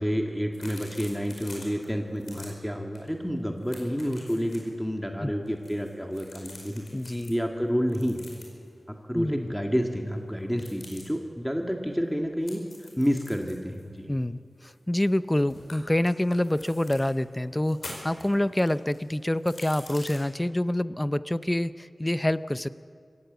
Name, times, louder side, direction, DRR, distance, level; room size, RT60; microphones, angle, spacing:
voice 1, 0.0-6.8 7.3-8.2 8.9-14.1, equal, ahead, 2 dB, 1.9 m, -29 dB
sound 1, 0.5-1.9 2.2-2.5 2.9-3.1 3.4-4.7 5.5-7.3 7.9-8.7 10.5-11.0 12.5-15.2 15.5-17.1 17.6-20.2, left 2 dB, 90° left, 4.9 m, -46 dB
voice 2, 6.9-7.3 9.1-9.5 14.1-22.7, left 1 dB, 20° left, 14 dB, 0.6 m, -27 dB
26.0 x 15.0 x 8.1 m, 2.2 s
wide cardioid pair, 70°, 0 cm